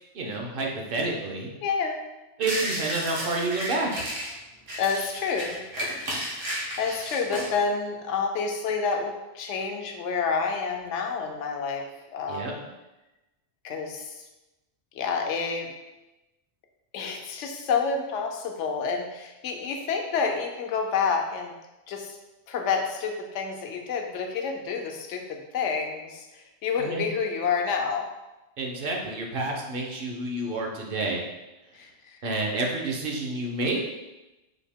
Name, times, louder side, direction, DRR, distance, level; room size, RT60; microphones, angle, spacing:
voice 1, 0.1-1.5 2.4-4.0 12.3-12.5 26.8-27.1 28.6-31.3 32.2-33.8, right 2 dB, 55° right, 0 dB, 0.7 m, -29 dB
voice 2, 1.6-2.0 4.8-5.6 6.8-11.8 12.1-12.6 13.6-14.2 14.9-15.7 16.9-21.5 21.9-22.2 22.5-28.1 31.7-32.2, left 5 dB, 80° left, 3 dB, 0.9 m, -29 dB
sound 1, 2.4-4.3 4.7-7.5, equal, 80° right, 1.3 m, -33 dB
4.2 x 2.8 x 3.5 m, 1.0 s
omnidirectional pair, 1.2 m